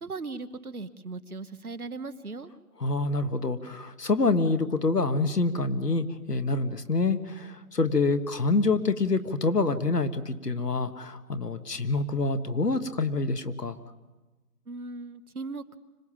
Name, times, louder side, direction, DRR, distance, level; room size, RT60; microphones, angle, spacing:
voice 1, 0.0-2.5 14.7-15.8, right 3 dB, 70° right, 13 dB, 1.2 m, -38 dB
voice 2, 2.8-13.8, left 3 dB, 90° left, 11 dB, 1.7 m, -26 dB
25.5 x 18.0 x 7.4 m, 1.2 s
figure-of-eight pair, 180°, 46 cm